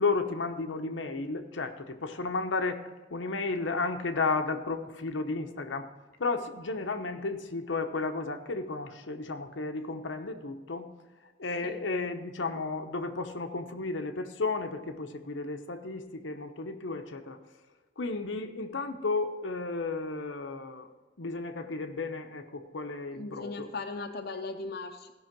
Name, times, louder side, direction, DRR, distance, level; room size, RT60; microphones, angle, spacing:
voice 1, 0.0-2.8 3.1-5.9 6.2-10.9 11.4-17.4 18.0-20.9 21.2-23.7, left 3 dB, 90° left, 6 dB, 0.9 m, -33 dB
voice 2, 23.1-25.1, left 3 dB, 55° left, 4 dB, 0.7 m, -38 dB
15.5 x 5.6 x 6.0 m, 1.2 s
head